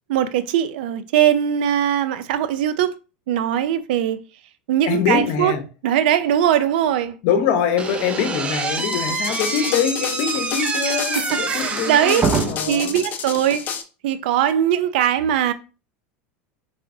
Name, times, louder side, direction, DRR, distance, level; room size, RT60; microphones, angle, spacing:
voice 1, 0.1-2.9 3.3-4.2 4.7-5.5 5.8-7.2 10.8-12.2 12.7-13.7 14.0-15.5, right 10 dB, 80° right, 0.5 m, -20 dB
voice 2, 4.9-5.6 7.2-13.0, left 7 dB, 65° left, 0.9 m, -23 dB
Slam / Squeak, 7.8-12.7, right 4 dB, 20° right, 0.6 m, -26 dB
sound 1, 8.8-13.8, left 7 dB, 35° left, 0.6 m, -30 dB
4.5 x 3.3 x 2.7 m
supercardioid pair, 125°, 5 cm